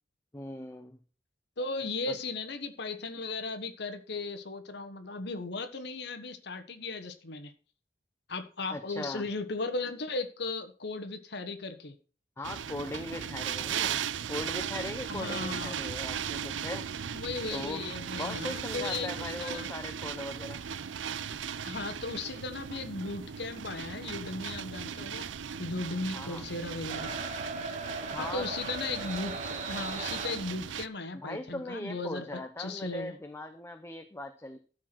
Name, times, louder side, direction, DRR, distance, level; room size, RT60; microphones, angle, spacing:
voice 1, 0.3-1.0 2.1-2.2 8.7-9.3 12.4-14.0 14.3-16.9 17.5-17.8 18.2-20.6 26.1-26.5 28.1-28.5 31.1-34.6, left 1 dB, 15° left, 7 dB, 0.6 m, -39 dB
voice 2, 1.6-7.5 8.3-12.0 15.1-15.8 17.1-19.7 21.6-25.3 25.6-27.2 28.2-33.1, left 3 dB, 65° left, 9 dB, 1.3 m, -36 dB
sound 1, 12.4-30.9, right 8 dB, 80° right, 0.5 m, -37 dB
sound 2, 26.9-30.6, right 3 dB, 40° right, 1.5 m, -38 dB
13.0 x 4.7 x 6.1 m, 0.39 s
head